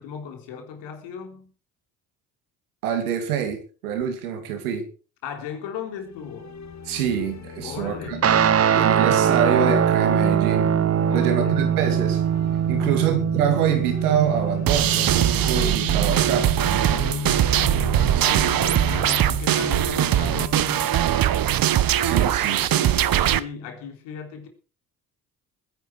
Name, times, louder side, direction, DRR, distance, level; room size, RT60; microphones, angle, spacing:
voice 1, 0.0-1.5 5.2-6.5 7.6-8.3 8.9-9.3 11.1-11.7 12.7-13.1 16.9-17.6 18.8-21.1 23.3-24.5, left 7 dB, 75° left, 4.0 m, -37 dB
voice 2, 2.8-4.9 6.9-8.2 8.7-10.8 11.1-12.2 12.7-16.5 18.1-18.7 22.0-23.1, right 7 dB, 85° right, 2.7 m, -26 dB
sound 1, 6.0-22.1, left 6 dB, 40° left, 1.6 m, -35 dB
Guitar, 8.2-17.0, right 9 dB, 35° right, 0.8 m, -22 dB
sound 2, 14.7-23.4, right 11 dB, 50° right, 1.1 m, -21 dB
20.0 x 10.5 x 4.7 m
hypercardioid pair, 50°, 43 cm